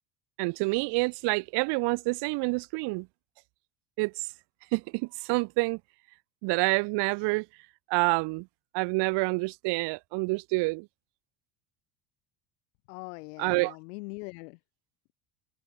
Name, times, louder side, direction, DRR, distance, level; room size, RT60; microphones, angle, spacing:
voice 1, 0.4-3.1 4.0-4.3 4.7-5.8 6.4-7.4 7.9-8.5 8.7-10.9 13.4-13.7, right 27 dB, 65° right, 1.4 m, -27 dB
voice 2, 12.9-14.6, left 29 dB, 85° left, 6.1 m, -41 dB
supercardioid pair, 120°, 44 cm